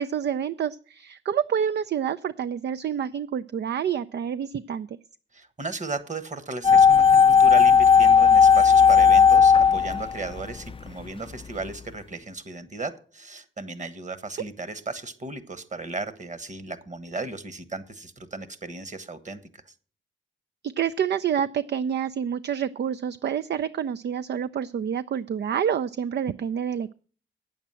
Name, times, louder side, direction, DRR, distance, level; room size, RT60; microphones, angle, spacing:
voice 1, 0.0-5.0 20.8-26.9, right 8 dB, 55° right, 14 dB, 0.4 m, -28 dB
voice 2, 5.3-19.7, right 3 dB, 35° right, 13 dB, 1.4 m, -35 dB
sound 1, 6.6-10.8 11.0-11.1, left 6 dB, 25° left, 0.4 m, -15 dB
9.0 x 7.3 x 7.4 m, 0.42 s
cardioid pair, 70°, 21 cm